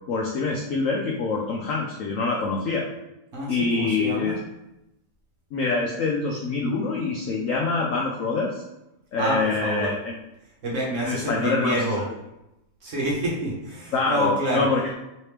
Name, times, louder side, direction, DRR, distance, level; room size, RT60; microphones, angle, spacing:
voice 1, 0.1-2.9 3.5-4.3 5.5-8.6 9.1-10.2 11.1-11.8 13.9-14.8, left 3 dB, 75° left, -1 dB, 0.7 m, -25 dB
voice 2, 3.3-4.4 9.2-9.9 10.6-12.0 12.8-14.7, right 1 dB, 55° right, -4 dB, 1.1 m, -27 dB
3.2 x 3.0 x 3.2 m, 0.90 s
omnidirectional pair, 1.9 m